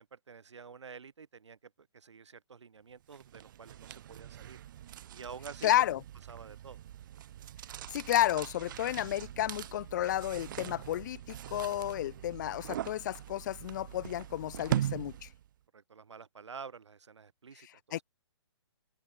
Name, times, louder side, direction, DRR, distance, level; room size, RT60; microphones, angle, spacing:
voice 1, 0.0-4.6 5.1-5.9 6.3-6.8 15.7-18.0, right 5 dB, 80° right, 7.0 m, -49 dB
sound 1, 3.1-15.5, right 11 dB, 45° right, 0.6 m, -41 dB
voice 2, 5.6-6.0 7.9-15.3 17.9-18.0, left 13 dB, 40° left, 0.9 m, -31 dB
hypercardioid pair, 150°, 15 cm